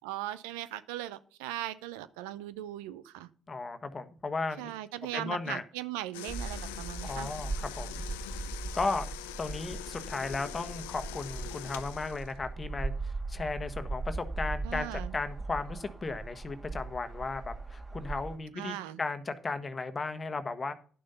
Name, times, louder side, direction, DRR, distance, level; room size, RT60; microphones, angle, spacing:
voice 1, 0.0-3.3 4.6-7.3 14.6-15.2 18.5-19.0, right 14 dB, 80° right, 15 dB, 0.6 m, -39 dB
voice 2, 3.5-4.7 5.1-5.6 7.0-8.0 8.7-9.1 9.4-20.7, left 3 dB, 35° left, 10 dB, 1.3 m, -35 dB
sound 1, 6.1-12.4, left 14 dB, 85° left, 0.5 m, -44 dB
sound 2, 6.3-18.4, right 3 dB, 30° right, 3.4 m, -39 dB
11.0 x 6.4 x 5.6 m, 0.43 s
hypercardioid pair, 50°, 0 cm